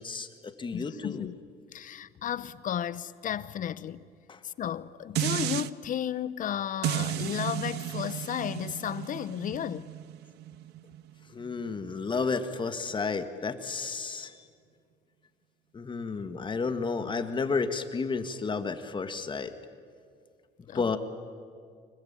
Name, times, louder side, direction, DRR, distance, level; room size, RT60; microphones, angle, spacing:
voice 1, 0.0-1.3 4.3-4.4 11.3-14.4 15.7-19.5 20.7-21.0, left 4 dB, 30° left, 1.8 m, -32 dB
voice 2, 0.7-1.3 1.7-4.0 4.4-9.9 20.7-21.0, left 10 dB, 50° left, 0.8 m, -34 dB
sound 1, 5.2-5.7 6.8-12.0 12.4-12.5, right 14 dB, 80° right, 0.6 m, -34 dB
25.0 x 21.0 x 8.9 m
cardioid pair, 110°, 17 cm